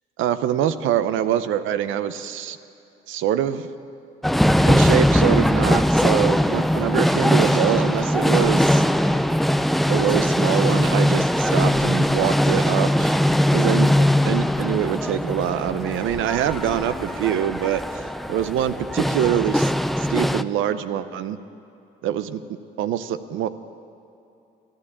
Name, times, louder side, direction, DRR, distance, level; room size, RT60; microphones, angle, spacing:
voice 1, 0.2-2.6 3.1-3.7 4.7-8.8 9.9-13.2 13.5-13.9 14.2-19.7 20.0-21.4 22.0-22.4 22.8-23.5, right 10 dB, 85° right, 13 dB, 0.6 m, -24 dB
sound 1, 4.2-20.4, equal, ahead, 0.3 m, -20 dB
sound 2, 6.5-9.8, right 2 dB, 60° right, 3.1 m, -44 dB
14.5 x 9.9 x 8.5 m, 2.8 s
cardioid pair, 90°, 20 cm